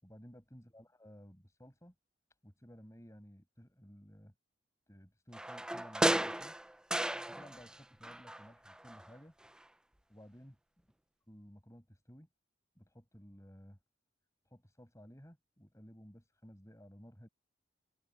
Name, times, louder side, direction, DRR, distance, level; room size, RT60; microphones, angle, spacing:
voice 1, 0.0-1.9 2.4-4.3 4.9-6.5 7.3-9.3 10.1-10.6 11.3-12.3 12.8-13.8 14.4-17.3, equal, 15° left, 6.5 m, -56 dB
sound 1, 5.3-7.8 8.0-9.1 9.4-9.5, right 1 dB, 5° right, 0.3 m, -34 dB
head